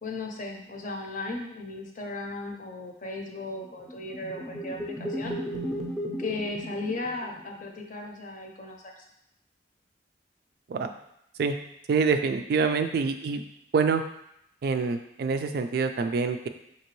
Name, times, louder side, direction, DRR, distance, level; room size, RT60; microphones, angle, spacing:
voice 1, 0.0-5.4 6.2-9.0 12.6-12.8, left 2 dB, 45° left, 2 dB, 0.6 m, -36 dB
sound 1, 3.6-7.6, equal, ahead, 0.5 m, -35 dB
voice 2, 11.9-13.4 13.7-14.0 14.6-16.5, right 5 dB, 55° right, 7 dB, 0.3 m, -26 dB
5.3 x 2.9 x 3.0 m, 0.77 s
head